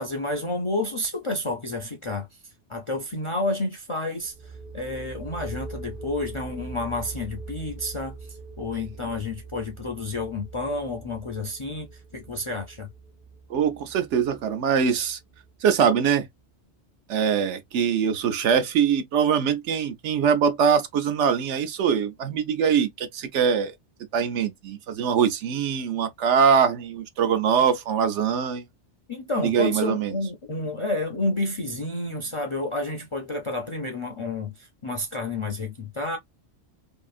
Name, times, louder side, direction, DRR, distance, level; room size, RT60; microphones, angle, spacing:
voice 1, 0.0-12.9 29.1-36.2, left 2 dB, 45° left, 0.4 m, -30 dB
sound 1, 4.2-15.7, right 3 dB, 55° right, 0.8 m, -42 dB
voice 2, 13.5-15.2 15.6-16.3 17.1-23.7 24.1-28.6 29.4-30.1, right 7 dB, 80° right, 1.0 m, -23 dB
2.8 x 2.5 x 2.4 m
omnidirectional pair, 1.2 m